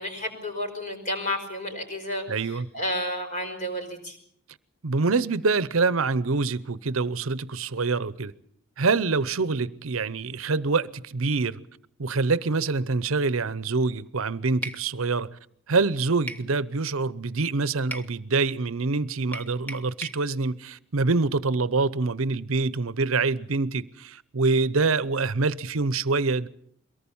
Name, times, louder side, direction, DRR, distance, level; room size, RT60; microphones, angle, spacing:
voice 1, 0.0-4.2, left 1 dB, 35° left, 5.3 m, -31 dB
voice 2, 2.3-2.6 4.8-8.3 8.8-11.6 12.0-15.4 15.7-26.5, right 3 dB, 70° right, 0.8 m, -25 dB
sound 1, 14.6-14.8 16.3-16.5 17.9-18.1 19.3-20.2, equal, 10° left, 1.0 m, -36 dB
23.0 x 18.5 x 7.2 m
head